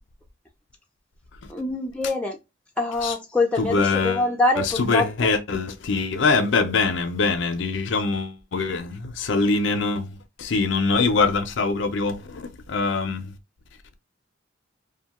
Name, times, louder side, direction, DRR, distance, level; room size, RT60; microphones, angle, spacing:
voice 1, 1.5-2.4 2.8-5.3, left 2 dB, 5° left, 0.5 m, -24 dB
voice 2, 3.6-4.2 4.6-13.3, left 4 dB, 70° left, 0.5 m, -23 dB
2.6 x 2.3 x 2.8 m
head